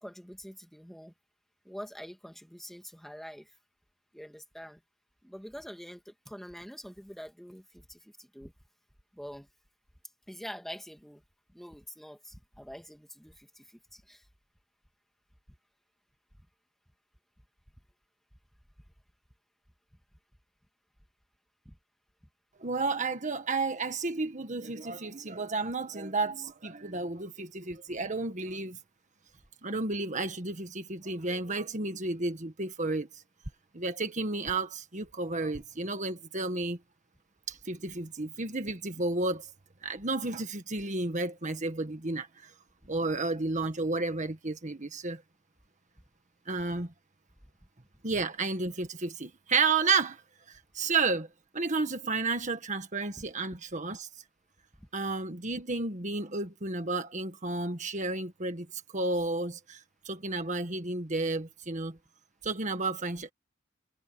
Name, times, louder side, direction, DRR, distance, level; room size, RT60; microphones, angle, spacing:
voice 1, 0.0-1.1 1.6-3.6 4.1-4.8 5.2-8.5 9.1-9.5 10.3-11.2 11.5-14.3 21.7-21.8 53.2-53.3 54.8-54.9, equal, ahead, 2.2 m, -45 dB
voice 2, 22.6-28.8 29.6-33.1 33.7-36.8 37.5-39.5 39.8-42.5 42.9-45.2 46.5-46.9 48.0-50.2 50.5-51.3 51.5-54.1 54.9-58.7 58.9-62.0 62.4-63.3, right 3 dB, 40° right, 1.6 m, -32 dB
head